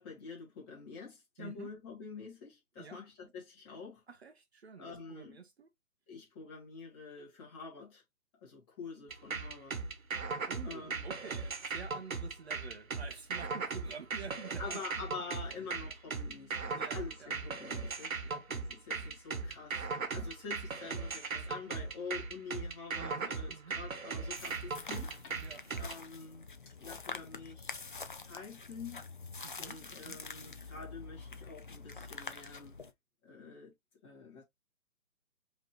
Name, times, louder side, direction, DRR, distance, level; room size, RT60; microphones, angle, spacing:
voice 1, 0.0-4.0 4.8-5.4 6.1-8.0 8.4-9.8 10.6-11.0 14.6-18.2 18.5-25.4 25.7-27.8 28.2-29.0 29.6-32.8 33.2-33.7 34.0-34.4, left 5 dB, 20° left, 1.8 m, -47 dB
voice 2, 1.4-1.7 2.8-3.0 4.1-5.7 10.4-14.8 15.5-15.7 16.8-17.3 18.2-18.5 23.0-23.8 25.4-25.6 29.4-30.2, right 5 dB, 50° right, 0.8 m, -49 dB
sound 1, 9.1-25.9, right 4 dB, 70° right, 1.2 m, -38 dB
sound 2, 24.3-32.9, left 4 dB, 35° left, 0.4 m, -46 dB
5.0 x 3.0 x 3.0 m
figure-of-eight pair, 150°, 43 cm